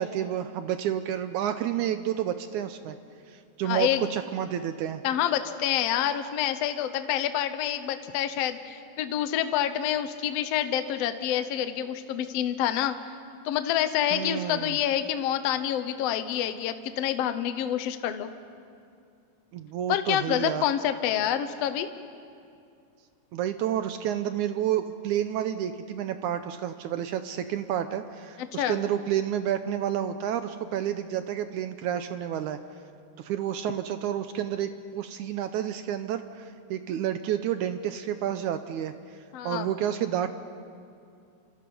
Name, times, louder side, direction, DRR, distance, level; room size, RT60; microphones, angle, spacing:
voice 1, 0.0-3.0 3.3-5.0 14.1-14.8 19.5-20.6 23.3-32.6 33.2-38.9 39.4-40.3, right 10 dB, 75° right, 10 dB, 1.9 m, -30 dB
voice 2, 3.6-4.1 5.0-13.0 13.4-18.3 19.9-21.9 28.5-28.8 39.3-39.7, left 10 dB, 70° left, 10 dB, 1.5 m, -27 dB
29.0 x 26.0 x 5.4 m, 2.4 s
omnidirectional pair, 3.9 m